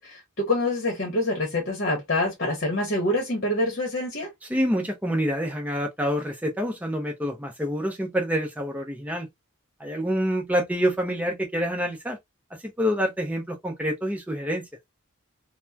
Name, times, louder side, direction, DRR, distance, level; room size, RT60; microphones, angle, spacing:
voice 1, 0.0-4.3, left 1 dB, 45° left, 1.0 m, -26 dB
voice 2, 4.5-9.3 9.8-12.2 12.6-14.7, equal, 5° right, 0.6 m, -27 dB
2.9 x 2.1 x 2.3 m
head